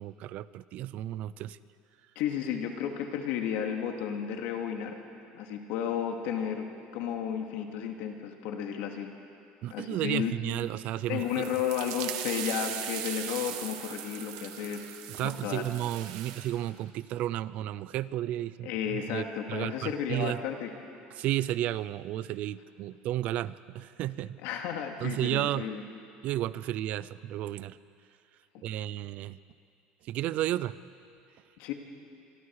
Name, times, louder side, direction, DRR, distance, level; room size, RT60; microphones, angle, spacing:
voice 1, 0.0-1.6 9.6-11.4 15.1-19.2 19.5-20.4 21.2-24.4 25.0-25.7 26.2-27.8 28.6-29.4 30.1-30.8, right 13 dB, 45° right, 17 dB, 0.5 m, -33 dB
voice 2, 2.2-5.0 5.3-6.7 6.9-9.1 9.7-10.3 11.1-14.9 15.2-15.7 18.6-20.7 24.4-25.8 31.6-31.7, left 8 dB, 65° left, 3 dB, 2.5 m, -33 dB
sound 1, 11.1-16.5, right 11 dB, 85° right, 1.6 m, -39 dB
25.5 x 25.0 x 4.9 m, 2.5 s
cardioid pair, 165°, 3 cm